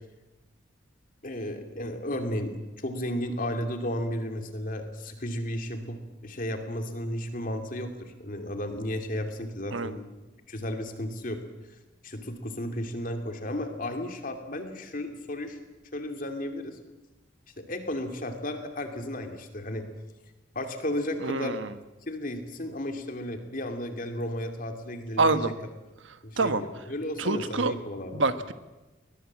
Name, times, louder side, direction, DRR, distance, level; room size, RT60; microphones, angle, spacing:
voice 1, 1.2-2.5 2.8-10.0 10.5-11.4 12.0-15.6 15.9-16.8 17.6-19.9 20.5-21.6 22.1-25.5 26.2-28.2, left 1 dB, 45° left, 5 dB, 2.7 m, -33 dB
voice 2, 21.2-21.7 25.2-25.5 26.4-26.6 27.2-27.7 28.1-28.5, right 3 dB, 75° right, 11 dB, 1.3 m, -26 dB
21.5 x 20.5 x 7.4 m, 1.1 s
head